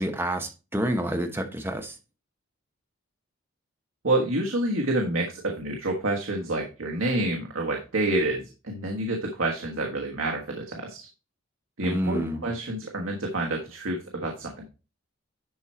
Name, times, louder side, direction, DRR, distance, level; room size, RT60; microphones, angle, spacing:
voice 1, 0.0-1.9 11.8-12.5, equal, 10° right, 1.1 m, -28 dB
voice 2, 4.0-11.1 11.8-14.7, right 1 dB, 70° right, 1.4 m, -28 dB
11.0 x 4.5 x 4.3 m
head